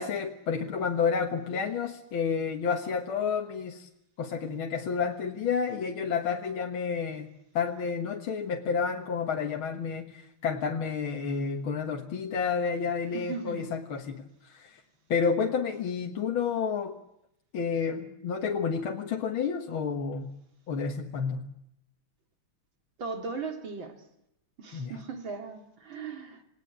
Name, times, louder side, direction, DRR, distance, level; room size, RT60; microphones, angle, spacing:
voice 1, 0.0-3.9 4.2-14.8 15.1-17.0 17.5-20.3 20.7-21.5 24.7-24.9, left 6 dB, 75° left, 2.3 m, -30 dB
voice 2, 13.1-13.7 23.0-24.1 24.6-26.4, right 4 dB, 65° right, 3.6 m, -38 dB
28.0 x 19.0 x 8.6 m
omnidirectional pair, 2.3 m